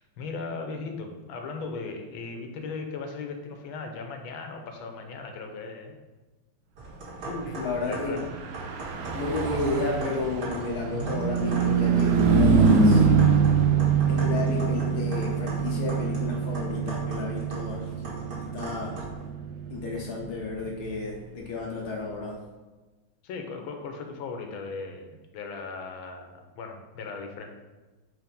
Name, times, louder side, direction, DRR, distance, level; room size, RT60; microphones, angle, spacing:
voice 1, 0.0-5.9 7.4-7.6 7.8-8.2 9.5-9.7 23.2-27.5, left 4 dB, 80° left, 4 dB, 1.6 m, -37 dB
sound 1, 6.8-19.3, right 2 dB, 55° right, 2.1 m, -40 dB
voice 2, 7.3-8.2 9.1-13.1 14.1-17.9 18.3-19.0 19.7-22.4, left 3 dB, 60° left, -1 dB, 1.2 m, -32 dB
Car passing by / Truck, 8.2-21.9, right 5 dB, 80° right, 0.8 m, -25 dB
4.8 x 3.9 x 5.2 m, 1.2 s
omnidirectional pair, 2.2 m